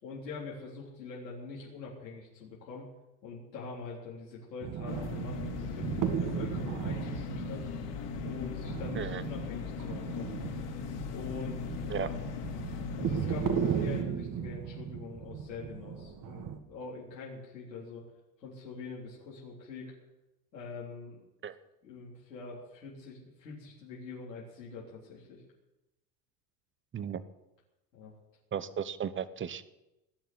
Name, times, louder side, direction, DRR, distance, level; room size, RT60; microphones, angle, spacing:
voice 1, 0.0-2.9 3.2-7.7 8.2-10.3 11.1-12.2 13.0-18.0 18.4-19.9 20.5-21.2 21.8-25.4 27.9-28.1, left 4 dB, 90° left, -6 dB, 3.8 m, -44 dB
sound 1, 4.6-16.6, right 8 dB, 40° right, 2.0 m, -36 dB
sound 2, 4.9-14.0, left 10 dB, 55° left, 3.4 m, -39 dB
voice 2, 28.5-29.6, right 8 dB, 25° right, 14 dB, 1.1 m, -35 dB
18.5 x 7.5 x 9.5 m, 0.97 s
hypercardioid pair, 85°, 48 cm